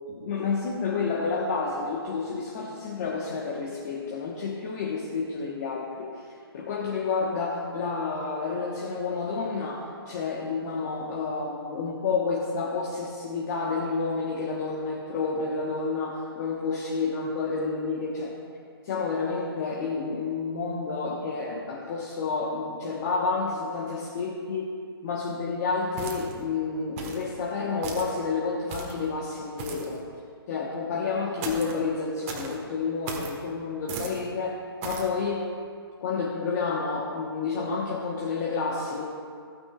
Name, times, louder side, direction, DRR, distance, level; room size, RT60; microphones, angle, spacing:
voice 1, 0.1-18.3 18.8-24.7 25.0-30.0 30.5-35.4 36.0-39.0, left 4 dB, 40° left, -2 dB, 1.3 m, -30 dB
sound 1, 26.0-26.4 27.0-27.3 27.8-28.2 28.7-29.0 29.6-30.0 31.4-31.8 32.3-32.6 33.1-33.4 33.9-34.2 34.8-35.1, right 4 dB, 35° right, 1.5 m, -36 dB
14.5 x 9.3 x 2.5 m, 2.2 s
figure-of-eight pair, 135°, 13 cm